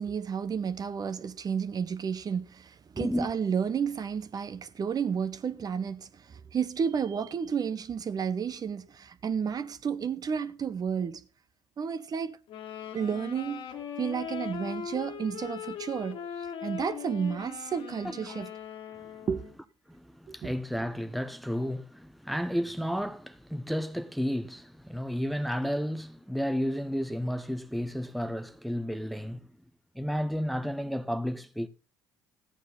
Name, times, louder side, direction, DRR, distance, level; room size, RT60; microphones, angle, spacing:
voice 1, 0.0-11.2 11.8-12.4 12.9-13.7 14.0-18.5 19.3-19.5 20.3-20.5, right 7 dB, 40° right, 0.9 m, -32 dB
voice 2, 3.0-3.3 18.0-18.4 19.0-19.2 19.9-29.5 29.9-31.7, equal, ahead, 0.9 m, -32 dB
sound 1, 12.5-19.5, left 8 dB, 55° left, 1.6 m, -40 dB
14.0 x 9.4 x 3.9 m
hypercardioid pair, 55°, 10 cm